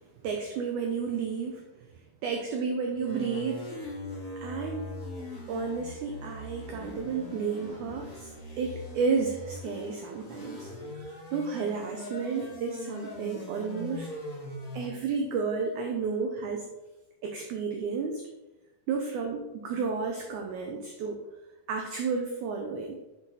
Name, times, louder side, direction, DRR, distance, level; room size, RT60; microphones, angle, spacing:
voice 1, 0.2-1.7 2.2-3.7 4.4-4.9 5.5-8.3 8.6-10.7 10.9-14.1 14.7-16.7 17.2-18.2 18.9-21.2 21.7-23.0, right 5 dB, 85° right, 3 dB, 1.7 m, -32 dB
sound 1, 3.0-14.9, left 1 dB, 40° left, 1.1 m, -41 dB
8.2 x 4.1 x 4.0 m, 1.0 s
omnidirectional pair, 4.3 m